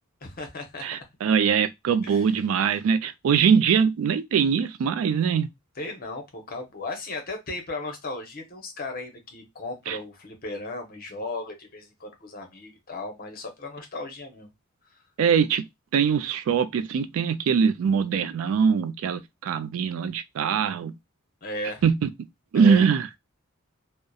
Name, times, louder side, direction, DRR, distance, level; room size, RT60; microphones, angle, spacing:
voice 1, 0.2-0.8 2.0-2.2 5.8-14.5 14.9-15.0 21.4-21.8 22.5-22.8, left 2 dB, 40° left, 0.8 m, -36 dB
voice 2, 0.8-5.5 9.9-10.0 15.2-15.6 15.9-20.9 21.8-22.1 22.5-23.1, right 6 dB, 65° right, 0.3 m, -22 dB
2.7 x 2.0 x 2.3 m
head